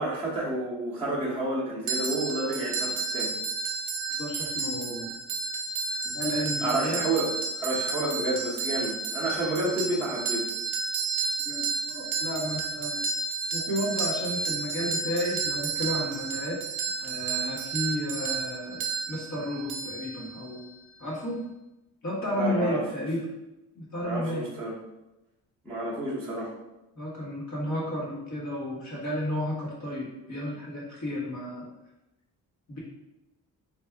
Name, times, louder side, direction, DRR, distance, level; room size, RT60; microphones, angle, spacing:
voice 1, 0.0-3.3 6.0-6.2 6.6-10.5 22.3-22.8 24.0-24.8 25.6-26.5, right 2 dB, 5° left, -11 dB, 0.7 m, -30 dB
sound 1, 1.9-20.6, right 4 dB, 60° right, 0.7 m, -32 dB
voice 2, 4.2-5.1 6.1-7.1 11.4-13.0 13.5-16.6 17.0-18.8 19.1-20.6 21.0-21.4 22.0-23.2 23.7-24.4 26.9-31.7 32.7-32.8, left 1 dB, 55° left, -5 dB, 1.4 m, -32 dB
3.5 x 2.6 x 3.3 m, 0.96 s
cardioid pair, 155°, 33 cm